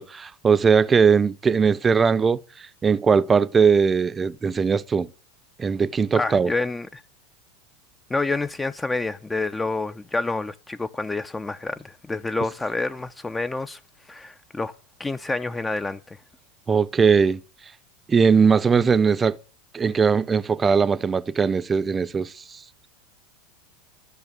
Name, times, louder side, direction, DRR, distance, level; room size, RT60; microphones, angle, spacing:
voice 1, 0.0-5.1 5.6-6.5 16.7-17.4 18.1-19.4 19.7-22.6, right 5 dB, 20° right, 0.7 m, -20 dB
voice 2, 6.2-7.0 8.1-13.8 14.1-14.7 15.0-16.2, left 3 dB, 15° left, 0.6 m, -28 dB
13.5 x 6.5 x 8.2 m
hypercardioid pair, 90°, 0 cm